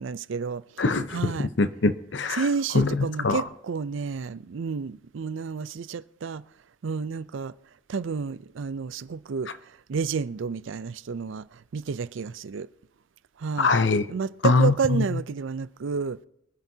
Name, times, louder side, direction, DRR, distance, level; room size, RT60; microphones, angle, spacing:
voice 1, 0.0-0.8 1.1-1.5 2.4-6.4 6.8-7.5 7.9-12.7 13.4-13.7 14.1-16.2, right 5 dB, 70° right, 0.4 m, -30 dB
voice 2, 0.8-2.5 2.7-3.4 13.6-14.1 14.4-15.2, left 3 dB, 60° left, 0.7 m, -23 dB
24.5 x 9.6 x 2.8 m
head